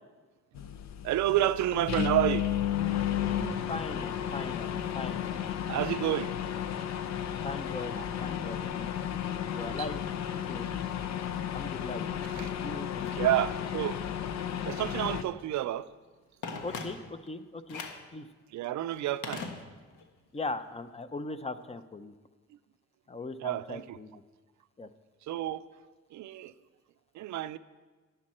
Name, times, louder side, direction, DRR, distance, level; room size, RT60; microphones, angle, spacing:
sound 1, 0.5-15.2, left 9 dB, 65° left, 0.8 m, -33 dB
voice 1, 1.0-2.5 5.7-6.3 12.2-12.5 13.1-14.0 14.6-15.9 18.5-19.5 23.4-24.0 25.2-25.7 26.1-26.5 27.1-27.6, right 13 dB, 70° right, 0.5 m, -29 dB
voice 2, 3.7-5.3 7.2-8.9 9.5-10.0 10.5-10.7 11.5-13.3 16.6-17.8 18.1-18.3 20.3-22.1 23.1-24.2 24.8-24.9, left 3 dB, 20° left, 0.6 m, -39 dB
Telephone, 16.4-17.3 17.7-18.1 19.2-20.1 20.4-20.5, left 4 dB, 90° left, 1.3 m, -40 dB
12.5 x 9.5 x 4.3 m
cardioid pair, 90°, 30 cm